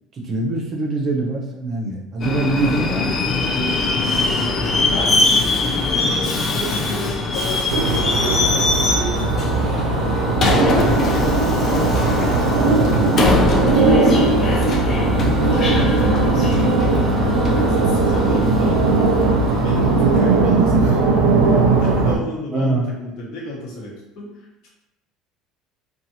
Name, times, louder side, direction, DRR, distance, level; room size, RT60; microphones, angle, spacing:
voice 1, 0.3-3.2 9.6-9.9 22.5-22.9, right 2 dB, 35° right, -1 dB, 0.6 m, -23 dB
Subway metro underground, 2.2-20.7, left 3 dB, 35° left, 0.4 m, -22 dB
voice 2, 4.8-21.1 21.4-24.7, left 1 dB, 65° left, -4 dB, 1.0 m, -32 dB
sound 1, 7.7-22.2, right 3 dB, 90° right, 0.5 m, -18 dB
2.7 x 2.3 x 2.7 m, 0.91 s
supercardioid pair, 115°, 0 cm